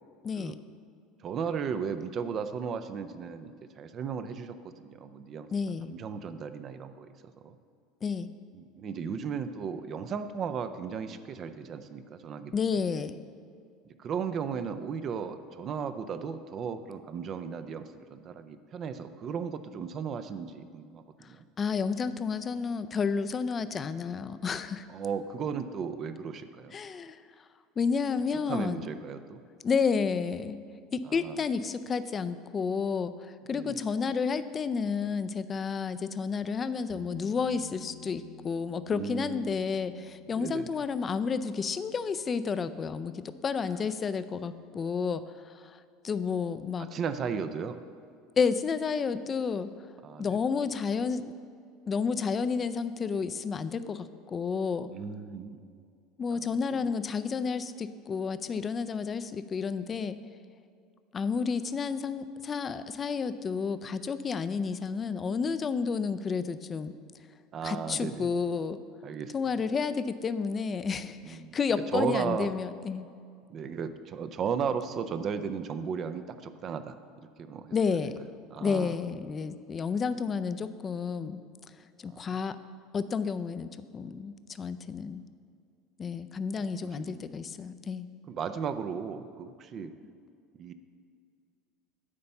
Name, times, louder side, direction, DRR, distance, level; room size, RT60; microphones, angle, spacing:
voice 1, 0.2-0.5 5.5-5.9 8.0-8.3 12.5-13.2 21.6-24.9 26.7-27.2 27.8-28.9 29.6-30.6 30.9-45.8 46.0-46.9 48.4-49.7 50.2-51.3 51.9-54.9 56.2-60.2 61.1-66.9 67.6-68.8 69.3-73.1 77.7-78.1 78.6-81.4 82.0-82.6 82.9-85.2 86.0-88.1, left 5 dB, 35° left, 12 dB, 0.4 m, -31 dB
voice 2, 1.2-5.5 5.8-7.6 8.5-12.6 14.0-21.4 24.9-26.7 28.5-29.4 31.1-31.4 33.5-33.8 38.9-39.6 40.3-40.7 46.8-47.8 50.0-50.4 54.9-55.6 56.3-56.9 67.5-68.3 69.0-69.3 71.2-71.6 71.9-72.5 73.5-76.9 77.4-77.8 78.5-78.9 82.1-82.3 86.5-87.3 88.3-89.9 90.6-90.7, right 6 dB, 45° right, 10 dB, 0.5 m, -35 dB
sound 1, 36.9-44.5 47.5-47.6, left 3 dB, 65° right, 2.5 m, -53 dB
9.7 x 4.2 x 6.9 m, 2.3 s
hypercardioid pair, 80°, 0 cm